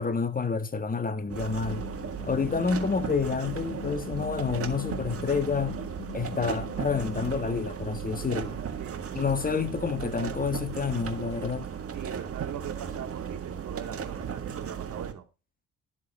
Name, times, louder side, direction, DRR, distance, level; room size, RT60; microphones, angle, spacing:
voice 1, 0.0-1.9 2.2-5.8 6.1-8.6 9.1-11.7, left 5 dB, 30° left, 1.5 m, -29 dB
sound 1, 1.3-15.1, right 7 dB, 50° right, 1.9 m, -36 dB
sound 2, 1.6-7.4, left 11 dB, 75° left, 1.6 m, -43 dB
voice 2, 11.9-15.3, right 9 dB, 75° right, 2.2 m, -41 dB
12.0 x 7.3 x 4.3 m
cardioid pair, 90°, 30 cm